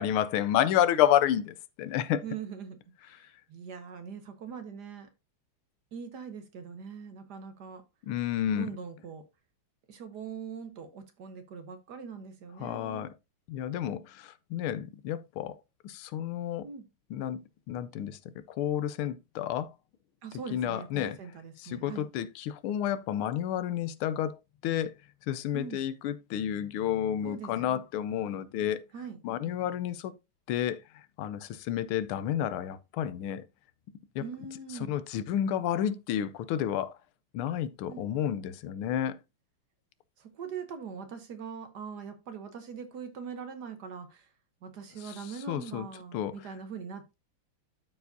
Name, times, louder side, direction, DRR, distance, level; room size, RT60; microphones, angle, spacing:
voice 1, 0.0-2.2 8.0-8.7 12.6-13.1 13.5-15.6 15.8-16.7 17.1-18.2 18.5-19.7 20.5-21.2 21.6-24.9 25.3-28.8 29.2-30.1 30.5-30.8 31.2-33.4 34.1-34.3 34.9-37.0 37.3-39.2 45.0-45.1 45.5-45.9 46.1-46.3, left 10 dB, 85° left, 1.5 m, -30 dB
voice 2, 2.2-5.1 5.9-7.8 8.5-9.2 9.9-13.1 16.6-16.8 20.2-22.1 25.5-25.8 27.2-27.7 28.9-29.2 34.2-35.0 37.9-38.1 40.2-44.3 44.6-47.1, right 6 dB, 60° right, 1.4 m, -42 dB
13.0 x 4.7 x 2.6 m
omnidirectional pair, 2.3 m